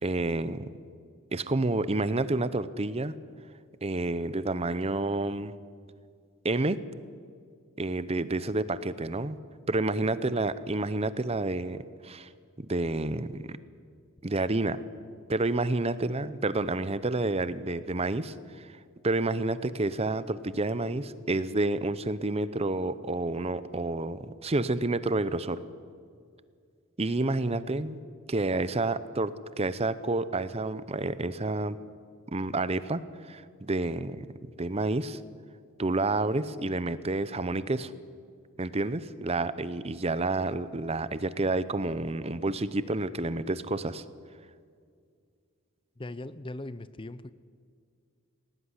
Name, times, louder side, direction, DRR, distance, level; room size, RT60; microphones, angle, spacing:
voice 1, 0.0-0.7 1.3-3.1 3.8-5.5 6.4-6.8 7.8-9.4 9.7-12.3 12.6-13.6 14.2-14.8 15.3-18.7 19.0-25.6 27.0-28.0 28.3-31.8 32.3-34.3 34.6-35.2 35.8-37.9 38.6-44.0, right 2 dB, 30° right, 15 dB, 0.7 m, -29 dB
voice 2, 46.0-47.3, left 2 dB, 25° left, 15 dB, 0.6 m, -40 dB
19.5 x 18.0 x 9.8 m, 2.2 s
head